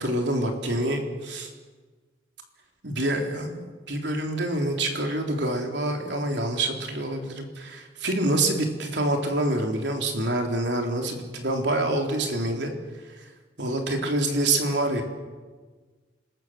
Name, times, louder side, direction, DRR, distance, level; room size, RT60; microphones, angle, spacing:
voice 1, 0.0-1.5 2.8-3.6 3.9-12.7 13.6-15.0, right 1 dB, 75° right, 3 dB, 3.8 m, -26 dB
27.0 x 20.0 x 7.7 m, 1.4 s
head